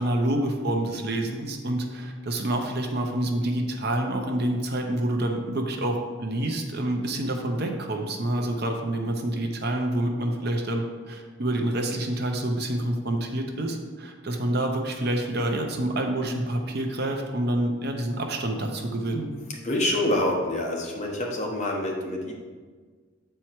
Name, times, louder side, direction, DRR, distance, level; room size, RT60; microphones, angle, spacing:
voice 1, 0.0-19.3, right 1 dB, 50° right, 3 dB, 0.7 m, -27 dB
voice 2, 19.6-22.3, left 1 dB, 35° left, -1 dB, 1.1 m, -26 dB
7.7 x 4.5 x 4.5 m, 1.5 s
head